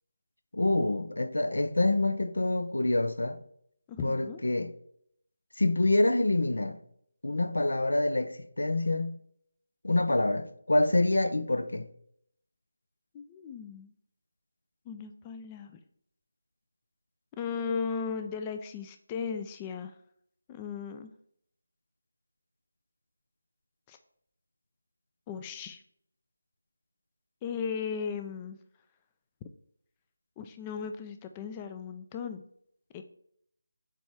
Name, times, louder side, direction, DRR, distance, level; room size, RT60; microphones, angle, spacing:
voice 1, 0.5-3.4 4.0-4.7 5.6-6.8 7.2-9.2 9.8-11.9, left 2 dB, 75° left, 0.6 m, -26 dB
voice 2, 3.9-4.4 13.1-13.9 14.9-15.8 17.4-19.9 20.5-21.1 23.9-24.0 25.3-25.8 27.4-28.6 30.4-32.4 32.9-33.0, left 6 dB, 20° left, 0.4 m, -36 dB
7.7 x 3.1 x 4.6 m
figure-of-eight pair, 160°, 0 cm